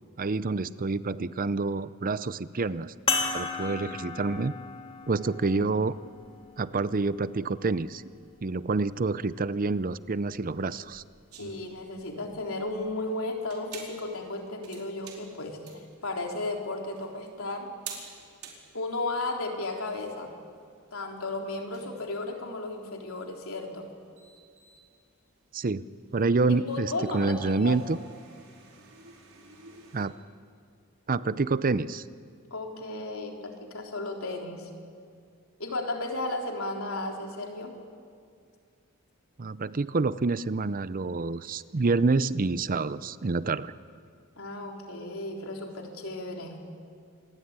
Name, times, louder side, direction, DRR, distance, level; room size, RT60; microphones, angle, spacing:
voice 1, 0.2-2.9 3.3-4.5 5.1-5.9 6.6-8.0 8.4-11.0 25.5-25.9 26.1-28.0 29.9-30.1 31.1-32.0 39.4-43.7, right 3 dB, 40° right, 16 dB, 0.6 m, -27 dB
sound 1, 3.1-7.9 8.7-8.8 10.9-11.0, left 4 dB, 25° left, 3.0 m, -35 dB
sound 2, 11.3-30.1, right 5 dB, 85° right, 4.8 m, -50 dB
voice 2, 11.4-17.7 18.7-20.3 20.9-23.9 26.5-27.8 32.5-34.7 35.6-37.7 44.4-46.6, left 2 dB, 75° left, 1 dB, 3.8 m, -34 dB
27.0 x 21.0 x 9.0 m, 2.2 s
head